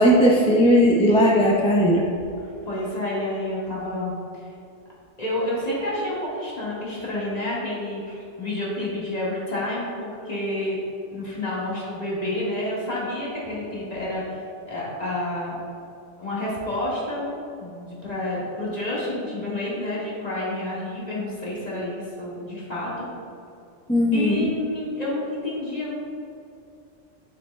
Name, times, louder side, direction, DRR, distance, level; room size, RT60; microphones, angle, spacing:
voice 1, 0.0-2.1 23.9-24.5, equal, 5° left, -4 dB, 0.5 m, -17 dB
voice 2, 2.4-4.5 5.2-10.8 11.1-15.6 16.2-17.3 17.6-23.0 24.1-25.9, left 1 dB, 35° left, -7 dB, 1.8 m, -29 dB
9.6 x 6.4 x 2.2 m, 2.6 s
omnidirectional pair, 1.2 m